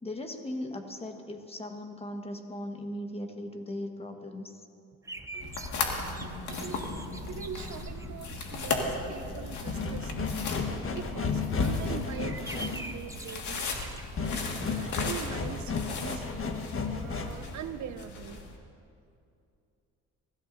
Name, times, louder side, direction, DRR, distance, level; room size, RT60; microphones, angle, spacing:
voice 1, 0.0-4.6, left 1 dB, 20° left, 3 dB, 1.6 m, -38 dB
sound 1, 5.0-15.1 15.5-15.6 15.8-16.7, right 2 dB, 10° right, 0.8 m, -46 dB
sound 2, 5.4-18.6, left 3 dB, 75° left, 2.1 m, -37 dB
voice 2, 6.0-10.4 10.9-13.7 14.2-16.3 16.9-18.5, right 8 dB, 70° right, 10 dB, 0.9 m, -43 dB
sound 3, 8.6-17.5, left 4 dB, 45° left, 1.4 m, -33 dB
24.0 x 16.0 x 2.8 m, 2.5 s
cardioid pair, 90°, 30 cm